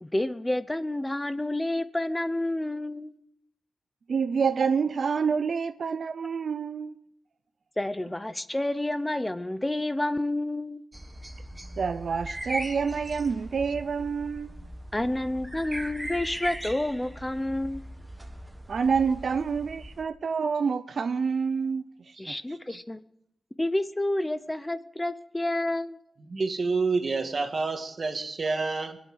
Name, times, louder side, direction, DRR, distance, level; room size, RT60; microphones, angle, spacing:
voice 1, 0.0-3.1 7.8-10.8 14.9-17.9 22.2-23.0 23.6-26.0, left 1 dB, 15° left, 0.6 m, -29 dB
voice 2, 4.1-7.0 11.8-14.6 18.7-22.6, right 5 dB, 65° right, 0.5 m, -28 dB
sound 1, 10.9-20.0, right 1 dB, 10° right, 1.5 m, -39 dB
voice 3, 26.3-29.0, right 4 dB, 45° right, 1.8 m, -28 dB
24.0 x 8.4 x 6.3 m
wide cardioid pair, 105°, 0 cm